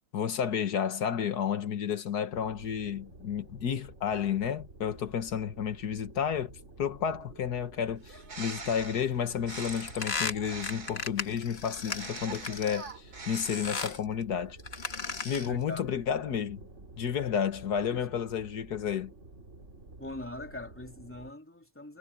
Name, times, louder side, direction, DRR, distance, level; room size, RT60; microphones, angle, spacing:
voice 1, 0.1-6.5 6.8-14.6 15.2-16.6 17.0-19.1, left 8 dB, 85° left, 1.9 m, -31 dB
sound 1, 2.3-21.3, right 2 dB, 50° right, 3.0 m, -51 dB
Bird, 8.0-11.1 11.8-14.0, right 3 dB, 80° right, 4.0 m, -44 dB
sound 2, 9.5-12.9 13.3-14.0 14.6-15.6, left 4 dB, 40° left, 1.8 m, -36 dB
voice 2, 15.5-15.8 17.9-18.1 20.0-22.0, left 1 dB, 10° left, 2.8 m, -41 dB
omnidirectional pair, 1.6 m